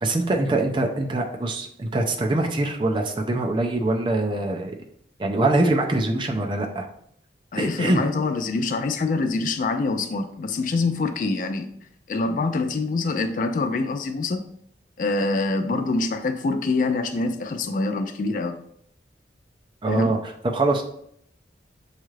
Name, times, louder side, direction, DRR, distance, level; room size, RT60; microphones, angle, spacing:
voice 1, 0.0-4.8 5.2-6.9 7.6-8.0 19.8-20.8, right 2 dB, 25° right, 2 dB, 0.4 m, -23 dB
voice 2, 7.5-11.7 12.1-14.5 15.0-18.6 19.9-20.2, left 3 dB, 45° left, 7 dB, 0.3 m, -25 dB
6.3 x 2.4 x 3.1 m, 0.69 s
head